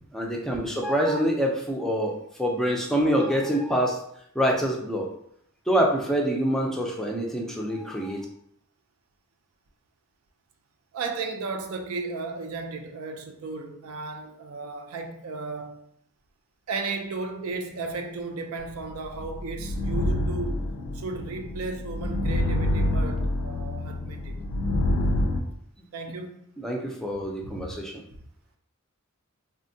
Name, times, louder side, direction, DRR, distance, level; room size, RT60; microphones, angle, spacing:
voice 1, 0.1-4.0 4.4-5.1 5.7-8.3 26.6-28.0, equal, ahead, 0.4 m, -26 dB
voice 2, 10.9-15.8 16.7-24.4 25.9-26.5 27.4-27.7, right 3 dB, 80° right, 0.4 m, -35 dB
sound 1, 18.9-25.4, left 1 dB, 85° left, 0.4 m, -27 dB
3.4 x 2.1 x 2.6 m
head